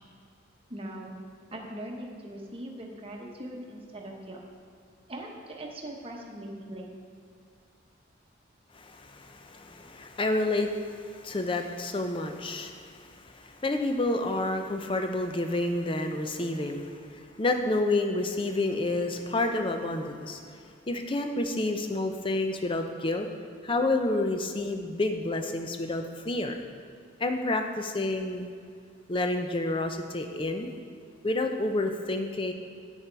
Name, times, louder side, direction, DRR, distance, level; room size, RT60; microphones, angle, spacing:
voice 1, 0.7-1.1 1.5-4.4 5.1-6.9, right 1 dB, 25° right, 0 dB, 1.0 m, -40 dB
voice 2, 8.7-20.6 20.9-23.3 23.6-26.5 27.2-28.5 29.1-30.7 31.2-32.5, left 2 dB, 25° left, 5 dB, 0.5 m, -29 dB
8.2 x 7.1 x 4.6 m, 2.2 s
head